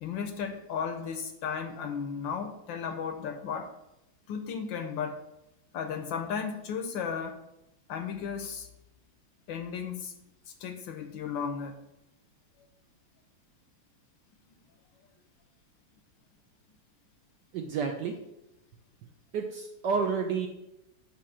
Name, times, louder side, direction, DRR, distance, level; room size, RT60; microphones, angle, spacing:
voice 1, 0.0-3.7 4.3-5.2 5.7-7.4 7.9-8.7 9.5-10.1 10.6-11.8, left 6 dB, 75° left, 7 dB, 1.2 m, -35 dB
voice 2, 17.5-18.2 19.3-20.5, right 5 dB, 75° right, 3 dB, 1.0 m, -30 dB
8.5 x 2.9 x 6.1 m, 0.90 s
omnidirectional pair, 2.4 m